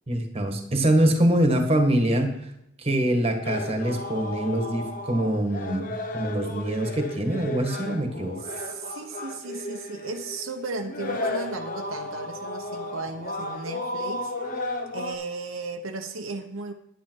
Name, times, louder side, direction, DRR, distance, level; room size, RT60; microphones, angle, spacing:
voice 1, 0.1-2.4 2.8-8.4, right 1 dB, 30° right, 5 dB, 1.6 m, -24 dB
sound 1, 3.4-15.1, left 1 dB, 45° left, 1.4 m, -34 dB
voice 2, 8.4-14.3 14.9-16.7, right 3 dB, 80° right, 4 dB, 1.1 m, -35 dB
10.5 x 10.0 x 4.7 m, 0.78 s
head